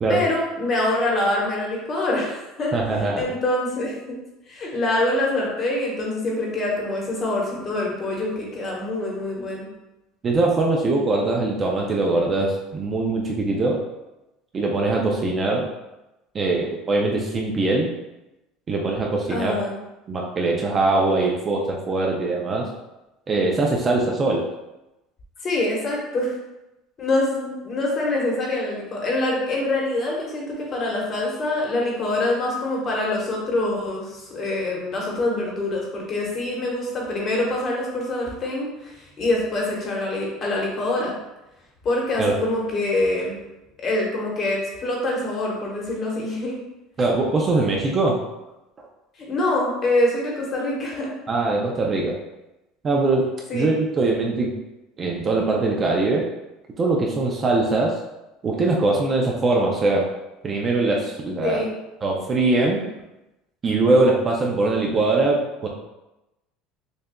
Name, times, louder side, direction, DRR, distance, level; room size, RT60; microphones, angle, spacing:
voice 1, 0.1-2.7 3.0-4.2 4.5-9.7 19.3-19.7 25.4-26.4 27.0-41.1 41.8-43.4 43.8-46.6 49.2-51.1 53.5-53.7 61.4-61.7, left 2 dB, 30° left, -2 dB, 1.1 m, -25 dB
voice 2, 2.7-3.3 10.2-13.8 14.5-15.7 16.3-17.9 18.7-19.5 20.1-22.7 23.3-24.4 42.2-42.4 47.0-48.2 51.3-52.2 52.8-54.5 55.0-56.3 56.8-57.9 58.4-60.1 60.4-61.6 62.0-62.8 63.6-65.7, right 2 dB, 25° right, -1 dB, 0.4 m, -22 dB
6.4 x 2.3 x 2.2 m, 0.96 s
cardioid pair, 150°, 0 cm